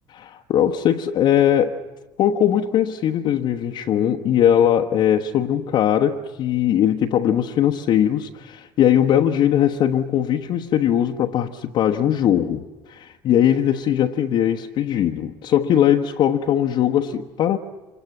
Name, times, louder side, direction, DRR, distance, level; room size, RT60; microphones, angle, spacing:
voice 1, 0.1-1.8 2.2-17.6, left 10 dB, 45° left, 1.1 m, -20 dB
29.0 x 26.5 x 7.3 m
figure-of-eight pair, 60°, 11 cm